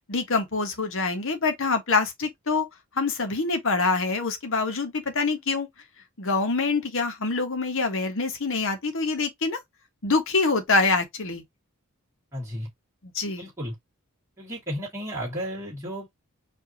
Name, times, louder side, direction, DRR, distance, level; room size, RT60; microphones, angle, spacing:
voice 1, 0.1-2.7 3.0-5.7 6.2-9.6 10.0-11.4 13.0-13.4, left 3 dB, 60° left, 1.1 m, -25 dB
voice 2, 12.3-12.7 13.4-13.7 14.4-16.1, equal, 10° right, 2.2 m, -33 dB
4.8 x 2.7 x 2.8 m
head